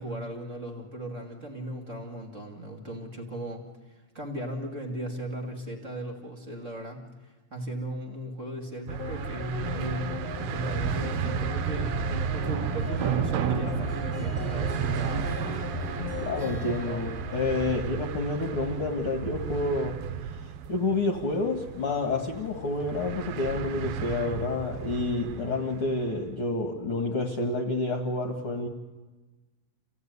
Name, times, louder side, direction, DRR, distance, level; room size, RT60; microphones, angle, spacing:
voice 1, 0.0-12.0 12.3-15.5, right 1 dB, 25° right, 2 dB, 2.2 m, -37 dB
sound 1, 8.9-26.1, right 8 dB, 75° right, 2.6 m, -32 dB
sound 2, 9.0-18.4 18.7-18.8, left 9 dB, 65° left, 2.2 m, -39 dB
Harp, 12.8-18.6, right 2 dB, 55° right, 1.0 m, -45 dB
voice 2, 16.2-20.0 20.7-28.7, left 2 dB, 45° left, 3 dB, 2.0 m, -29 dB
28.0 x 16.5 x 9.6 m, 1.2 s
omnidirectional pair, 4.5 m